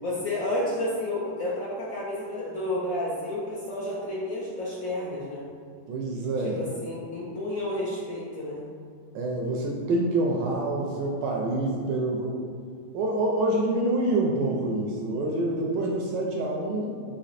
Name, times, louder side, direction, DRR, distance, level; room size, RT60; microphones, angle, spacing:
voice 1, 0.0-5.5 6.6-8.6, left 1 dB, 85° left, -7 dB, 0.7 m, -31 dB
voice 2, 5.9-6.6 9.1-12.5 12.9-17.1, right 2 dB, 75° right, -1 dB, 1.0 m, -27 dB
4.1 x 2.7 x 4.0 m, 2.1 s
omnidirectional pair, 2.3 m